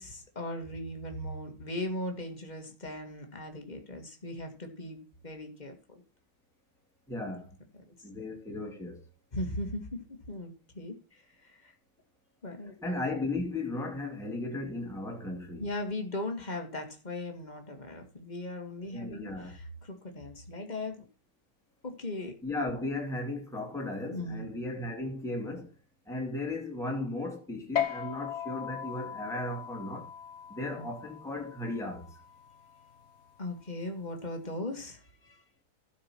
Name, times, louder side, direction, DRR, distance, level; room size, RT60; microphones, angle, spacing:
voice 1, 0.0-6.0 7.8-8.1 9.3-11.7 12.4-12.7 15.6-21.0 21.8-22.4 24.1-24.5 30.8-30.9 33.4-35.4, left 1 dB, 20° left, 2.1 m, -38 dB
voice 2, 7.1-7.6 8.0-9.0 12.8-15.6 18.9-19.5 22.4-25.7 26.1-30.1 30.5-32.2, left 2 dB, ahead, 2.5 m, -36 dB
sound 1, 27.8-34.5, left 9 dB, 50° left, 0.9 m, -39 dB
12.5 x 6.2 x 6.2 m
omnidirectional pair, 2.4 m